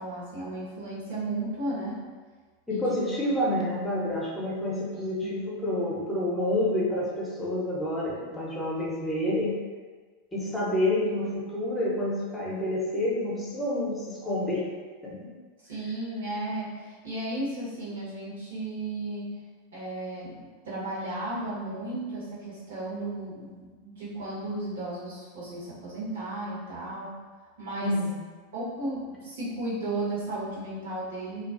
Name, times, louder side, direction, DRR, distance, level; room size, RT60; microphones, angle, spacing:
voice 1, 0.0-2.1 2.7-3.1 3.6-3.7 4.9-5.4 15.6-19.3 19.7-27.1 27.6-28.0 28.5-31.4, right 2 dB, 70° right, -7 dB, 0.9 m, -34 dB
voice 2, 2.7-9.5 10.3-14.6 15.0-15.3 27.8-28.2, left 1 dB, 10° left, -5 dB, 0.7 m, -28 dB
2.3 x 2.3 x 2.4 m, 1.4 s
figure-of-eight pair, 90°, 0 cm